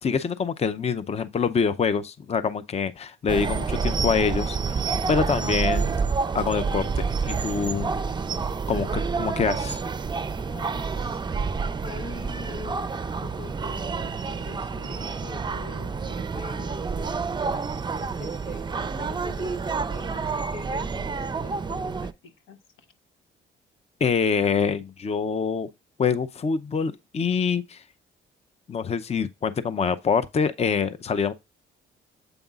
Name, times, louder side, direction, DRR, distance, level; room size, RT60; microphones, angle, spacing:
voice 1, 0.0-4.8 5.1-5.9 6.3-8.0 8.7-9.8 24.0-25.7 26.0-27.8 28.7-31.3, left 6 dB, 30° left, 0.6 m, -25 dB
sound 1, 3.3-22.1, right 5 dB, 25° right, 0.5 m, -28 dB
voice 2, 10.4-11.2 11.8-12.9 13.2-22.9, left 6 dB, 90° left, 1.0 m, -44 dB
8.0 x 5.2 x 2.4 m
cardioid pair, 90°, 20 cm